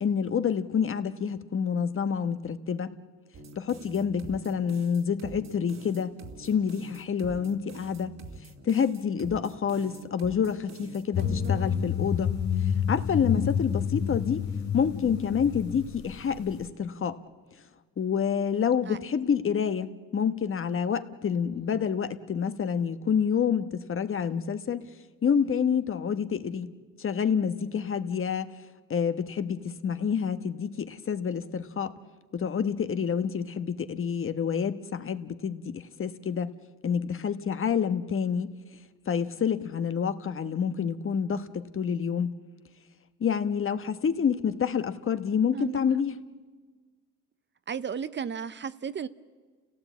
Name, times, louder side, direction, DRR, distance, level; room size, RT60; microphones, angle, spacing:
voice 1, 0.0-2.9 3.6-6.1 6.4-8.1 8.6-12.3 12.9-14.4 14.7-17.2 18.0-24.9 25.2-26.7 27.0-28.5 28.9-31.9 32.3-36.5 36.8-38.5 39.1-42.4 43.2-46.1, left 7 dB, 45° left, 1.2 m, -28 dB
sound 1, 3.3-11.5, right 3 dB, 60° right, 2.4 m, -46 dB
sound 2, 11.1-16.6, left 8 dB, 70° left, 2.5 m, -29 dB
voice 2, 11.2-11.8 13.3-13.5 18.8-19.0 21.5-21.7 45.5-45.8 47.7-49.1, right 7 dB, 40° right, 0.7 m, -35 dB
29.5 x 16.5 x 8.4 m
cardioid pair, 90°, 30 cm